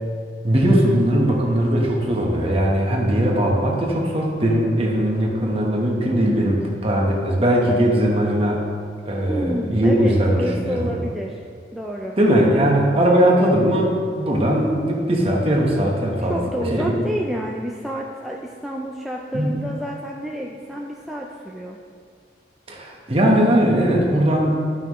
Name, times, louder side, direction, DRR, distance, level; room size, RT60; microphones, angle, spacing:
voice 1, 0.4-8.6 9.1-10.9 12.2-16.4 16.7-17.0 19.3-19.5 22.7-24.6, right 1 dB, 35° right, -1 dB, 1.2 m, -19 dB
voice 2, 9.3-11.4 11.7-12.2 16.2-21.8, equal, ahead, -2 dB, 0.3 m, -29 dB
11.0 x 5.7 x 3.1 m, 2.1 s
head